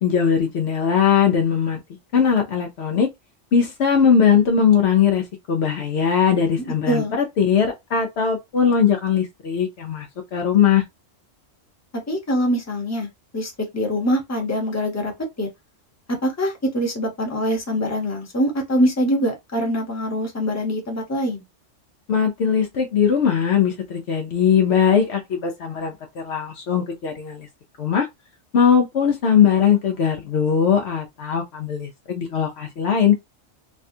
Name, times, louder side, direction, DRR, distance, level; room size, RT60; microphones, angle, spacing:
voice 1, 0.0-1.8 2.1-3.1 3.5-10.1 10.3-10.8 22.1-27.5 27.8-28.1 28.5-33.1, left 7 dB, 65° left, 0.8 m, -20 dB
voice 2, 6.6-7.1 12.1-13.1 13.3-15.1 15.4-15.5 16.1-21.4, equal, 15° left, 0.9 m, -23 dB
3.3 x 2.3 x 2.6 m
omnidirectional pair, 1.3 m